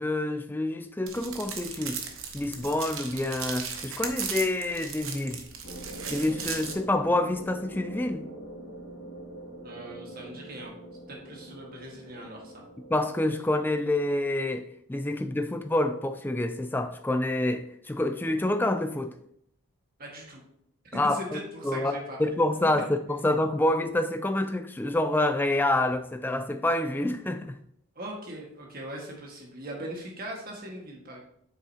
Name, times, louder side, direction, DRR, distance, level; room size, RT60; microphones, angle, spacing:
voice 1, 0.0-2.0 2.3-5.4 6.1-8.3 12.9-19.2 20.9-21.4 21.6-27.6, left 1 dB, 10° left, 0.3 m, -27 dB
sound 1, 1.1-6.7, right 6 dB, 65° right, 1.0 m, -37 dB
sound 2, 5.6-14.2, right 1 dB, 75° left, 2.2 m, -44 dB
voice 2, 9.6-10.7 11.1-12.6 20.0-20.4 20.8-22.4 27.9-31.2, right 1 dB, 40° right, 1.7 m, -40 dB
7.8 x 6.4 x 2.8 m
head